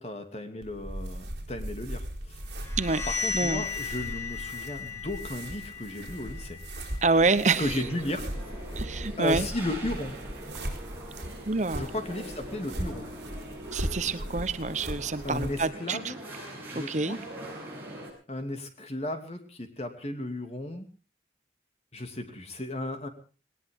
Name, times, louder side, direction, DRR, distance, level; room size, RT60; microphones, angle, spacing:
voice 1, 0.0-2.4 3.1-6.6 7.6-8.3 9.2-10.1 11.7-13.1 15.2-16.2 16.7-17.2 18.3-20.9 21.9-23.1, left 1 dB, 35° left, 6 dB, 2.7 m, -34 dB
sound 1, 0.6-15.6, right 1 dB, 70° right, 4.1 m, -38 dB
sound 2, 2.5-8.2, left 6 dB, 15° left, 3.6 m, -37 dB
voice 2, 3.3-3.6 7.0-7.8 8.8-9.5 11.5-11.9 13.7-16.1 16.7-17.2, right 3 dB, 40° right, 12 dB, 1.0 m, -27 dB
sound 3, 7.2-18.1, right 1 dB, 10° right, 7.9 m, -42 dB
20.0 x 19.0 x 3.7 m, 0.36 s
head